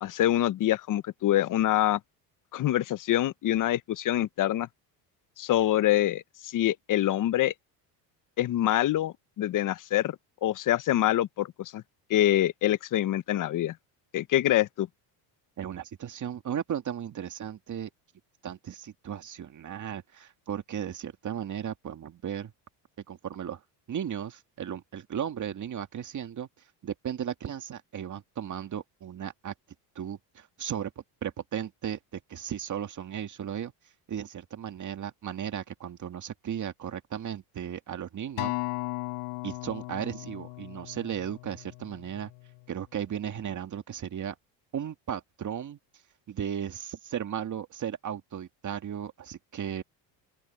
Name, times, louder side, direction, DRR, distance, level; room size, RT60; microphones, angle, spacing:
voice 1, 0.0-2.0 2.5-4.7 5.4-7.5 8.4-10.2 10.4-11.8 12.1-13.7 14.1-14.9, left 13 dB, 45° left, 0.7 m, -25 dB
voice 2, 15.6-17.9 18.4-22.5 23.1-23.6 23.9-26.5 26.8-29.5 30.0-33.7 34.1-38.5 39.4-42.3 42.7-44.4 44.7-45.8 46.3-49.8, right 9 dB, 40° right, 2.1 m, -35 dB
Acoustic guitar, 38.4-42.8 43.4-43.6, left 33 dB, 90° left, 7.9 m, -37 dB
open air
cardioid pair, 115°, 47 cm